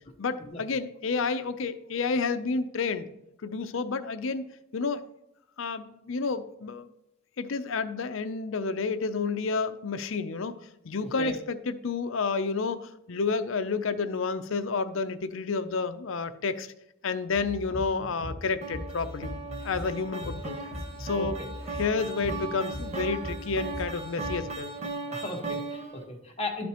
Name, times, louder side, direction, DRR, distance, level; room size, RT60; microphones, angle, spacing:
voice 1, 0.2-3.1 3.4-5.1 5.6-6.9 7.4-10.6 10.8-12.8 13.1-16.7 17.0-19.4 19.6-20.6 21.0-21.4 21.7-24.7, left 4 dB, 65° left, 11 dB, 0.6 m, -30 dB
sound 1, 17.3-24.6, equal, 60° right, 3.2 m, -40 dB
sound 2, 18.6-26.0, right 3 dB, 30° right, 1.0 m, -37 dB
voice 2, 21.2-21.5 25.1-26.7, left 2 dB, 30° left, 0 dB, 1.3 m, -36 dB
12.0 x 5.2 x 3.0 m, 0.87 s
head